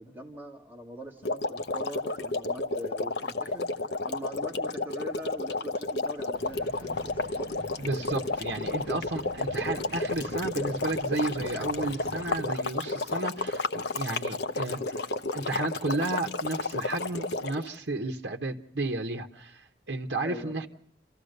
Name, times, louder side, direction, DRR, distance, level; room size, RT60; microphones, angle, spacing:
voice 1, 0.0-7.5 9.6-9.7 20.2-20.6, equal, 10° right, -1 dB, 2.4 m, -42 dB
sound 1, 1.2-17.7, left 2 dB, 65° left, 0.9 m, -31 dB
sound 2, 6.3-13.1, right 1 dB, 30° left, 6.8 m, -46 dB
voice 2, 7.8-15.0 15.3-20.7, right 2 dB, 65° right, 3 dB, 1.1 m, -33 dB
29.0 x 14.5 x 6.6 m, 0.75 s
head